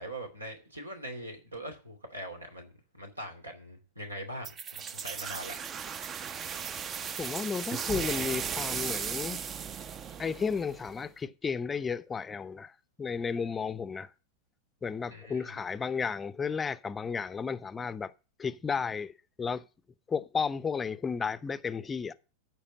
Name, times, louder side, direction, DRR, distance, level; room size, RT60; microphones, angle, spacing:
voice 1, 0.0-5.6 15.1-15.6, right 1 dB, 80° right, 2.7 m, -42 dB
sound 1, 4.4-11.1, right 7 dB, 25° right, 0.6 m, -36 dB
voice 2, 7.2-9.4 10.2-12.7 13.0-14.1 14.8-18.1 18.4-19.1 19.4-19.6 20.1-22.1, left 5 dB, 15° left, 0.6 m, -33 dB
14.0 x 4.7 x 8.5 m
figure-of-eight pair, 90°, 0 cm